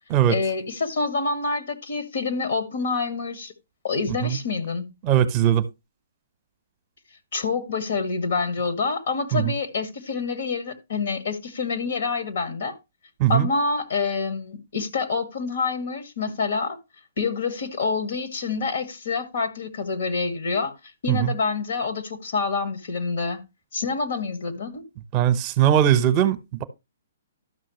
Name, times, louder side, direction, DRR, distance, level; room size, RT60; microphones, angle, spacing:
voice 1, 0.3-3.5 3.8-4.9 7.3-12.8 13.3-16.8 17.2-20.7 21.0-23.4 23.7-24.8, left 4 dB, 60° left, 1.9 m, -27 dB
voice 2, 5.0-5.6 9.3-9.5 13.2-13.5 21.1-21.3 25.1-26.6, right 10 dB, 35° right, 0.9 m, -20 dB
12.5 x 6.2 x 3.1 m
figure-of-eight pair, 125°, 0 cm